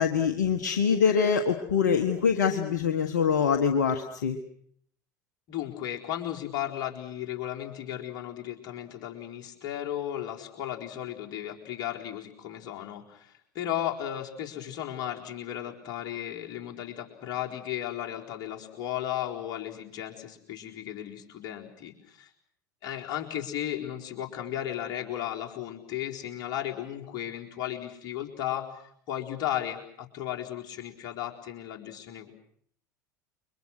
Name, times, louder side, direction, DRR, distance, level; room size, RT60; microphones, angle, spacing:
voice 1, 0.0-4.4, left 6 dB, 70° left, 7 dB, 1.5 m, -24 dB
voice 2, 5.5-22.3 22.8-32.3, left 11 dB, 45° left, 1 dB, 4.3 m, -35 dB
29.5 x 23.5 x 6.4 m, 0.65 s
figure-of-eight pair, 70°, 10 cm